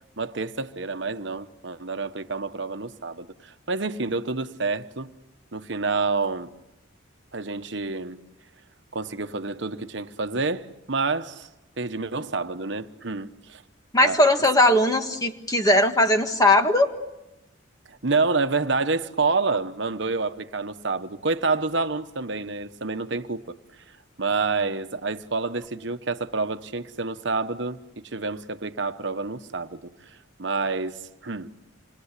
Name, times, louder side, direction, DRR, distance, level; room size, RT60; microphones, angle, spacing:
voice 1, 0.2-5.1 5.5-6.5 7.3-8.2 8.9-11.5 11.8-13.6 14.0-14.2 17.9-23.6 24.2-29.9 30.4-31.6, right 3 dB, 60° right, 1.1 m, -28 dB
voice 2, 13.9-16.9, left 1 dB, 20° left, 1.6 m, -19 dB
27.5 x 22.0 x 8.3 m
head